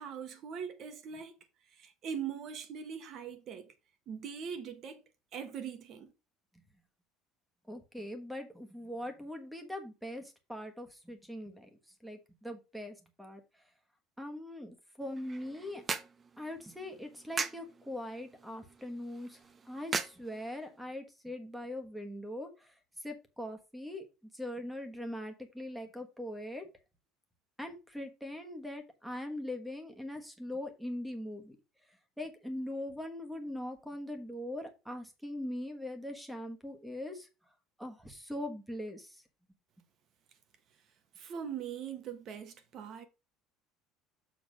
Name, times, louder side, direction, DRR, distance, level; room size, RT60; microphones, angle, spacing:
voice 1, 0.0-1.4 1.7-3.7 4.1-5.0 5.3-6.1 41.1-43.0, right 7 dB, 40° right, 1.3 m, -41 dB
voice 2, 7.7-11.7 12.0-13.4 14.2-15.8 16.4-19.4 19.6-22.7 23.0-24.1 24.3-26.7 27.6-31.6 32.2-37.3 37.8-39.2, left 1 dB, ahead, 1.2 m, -41 dB
sound 1, 15.0-20.9, right 5 dB, 20° right, 0.5 m, -41 dB
7.1 x 3.5 x 6.2 m
cardioid pair, 165°, 0 cm